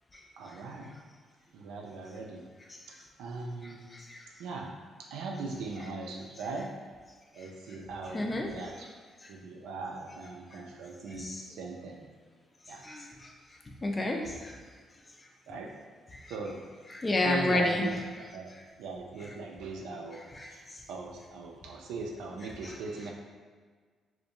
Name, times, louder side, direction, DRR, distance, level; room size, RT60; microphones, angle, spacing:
voice 1, 0.4-0.9 1.5-2.4 3.2-3.9 4.4-4.7 5.1-6.7 7.3-8.9 9.3-12.0 12.7-12.8 15.5-15.7 16.3-16.6 17.2-18.5 18.8-20.2 20.5-20.6 20.9-23.1, right 3 dB, 90° right, 0 dB, 0.4 m, -39 dB
voice 2, 8.1-8.5 11.2-11.4 12.8-13.3 13.8-14.5 16.9-17.9 20.3-20.5 22.6-22.8, left 2 dB, 25° left, 2 dB, 0.4 m, -30 dB
2.5 x 2.1 x 2.8 m, 1.5 s
cardioid pair, 90°, 0 cm